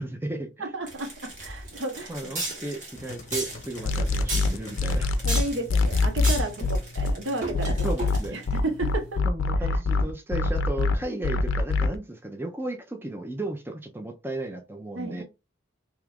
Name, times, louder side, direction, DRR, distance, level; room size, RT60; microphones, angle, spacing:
voice 1, 0.0-0.7 2.1-5.1 6.6-6.7 7.7-8.4 9.2-15.2, right 2 dB, 10° right, 0.4 m, -34 dB
voice 2, 0.6-2.2 4.9-7.8 8.3-9.2 9.6-9.7 14.9-15.2, right 2 dB, 85° right, 0.9 m, -33 dB
sound 1, 0.9-8.5, right 2 dB, 40° right, 1.2 m, -35 dB
sound 2, 2.9-9.2, left 2 dB, 40° left, 0.8 m, -43 dB
sound 3, 3.9-7.1 7.5-12.0, left 3 dB, 80° left, 0.4 m, -24 dB
2.9 x 2.4 x 3.4 m
head